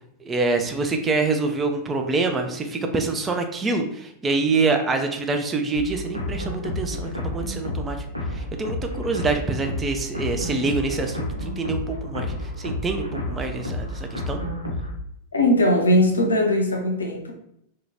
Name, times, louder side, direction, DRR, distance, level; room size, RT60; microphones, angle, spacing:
voice 1, 0.2-14.4, right 3 dB, 20° right, 5 dB, 0.3 m, -26 dB
sound 1, 5.7-14.9, left 1 dB, 85° right, 0.5 m, -30 dB
voice 2, 15.3-17.3, left 1 dB, 75° left, 2 dB, 0.5 m, -20 dB
2.8 x 2.1 x 2.7 m, 0.72 s
figure-of-eight pair, 90°, 0 cm